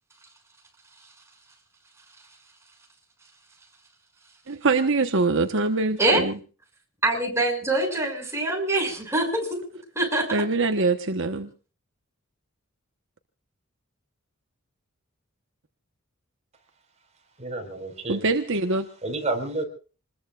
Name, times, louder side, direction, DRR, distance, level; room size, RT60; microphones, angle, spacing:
voice 1, 4.5-6.3 10.3-11.5 18.1-18.9, right 3 dB, 65° right, 6 dB, 1.2 m, -23 dB
voice 2, 7.0-9.6 9.9-10.3, right 2 dB, 15° right, 0 dB, 6.6 m, -24 dB
voice 3, 17.4-18.2 19.0-19.6, right 2 dB, 35° right, 3 dB, 4.8 m, -30 dB
28.0 x 21.0 x 2.5 m, 0.38 s
head